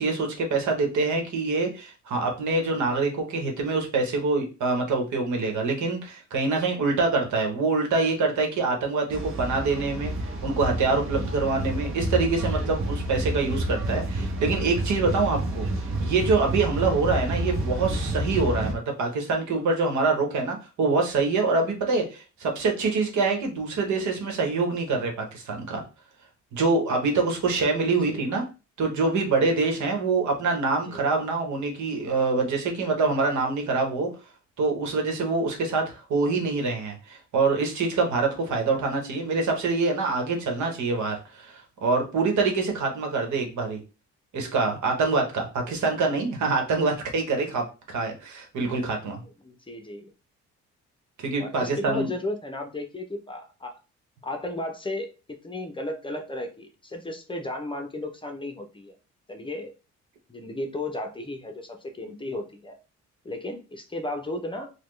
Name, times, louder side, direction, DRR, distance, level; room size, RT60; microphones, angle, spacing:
voice 1, 0.0-10.1 10.4-15.7 16.0-25.8 26.5-28.4 28.8-34.1 34.6-43.8 44.3-49.2 51.2-52.1, right 3 dB, 70° right, 3 dB, 1.2 m, -25 dB
sound 1, 9.1-18.7, right 1 dB, 45° right, 1.0 m, -29 dB
voice 2, 27.8-28.3 30.8-31.0 49.4-50.1 51.4-53.8 54.2-58.9 59.3-59.7 60.3-62.8 63.2-64.7, left 1 dB, 15° left, 4 dB, 0.6 m, -34 dB
4.1 x 2.3 x 3.2 m, 0.32 s
cardioid pair, 90°, 30 cm